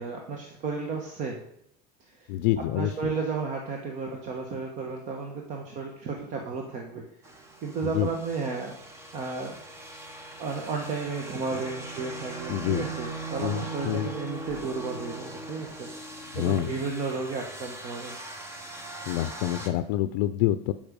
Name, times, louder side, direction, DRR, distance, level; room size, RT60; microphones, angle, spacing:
voice 1, 0.0-1.4 2.2-2.3 2.7-7.0 7.6-8.7 9.1-9.6 10.4-15.9 16.3-18.2, right 4 dB, 35° right, 1 dB, 1.3 m, -33 dB
voice 2, 2.3-2.9 7.8-8.1 12.5-12.8 13.4-14.1 16.3-16.7 19.1-20.7, left 13 dB, 65° left, 12 dB, 0.5 m, -27 dB
sound 1, 7.2-19.7, right 2 dB, 10° right, 1.0 m, -40 dB
sound 2, 11.6-16.3 16.7-16.8, left 2 dB, 25° left, 2.1 m, -52 dB
12.0 x 5.5 x 5.2 m, 0.75 s
cardioid pair, 165°, 21 cm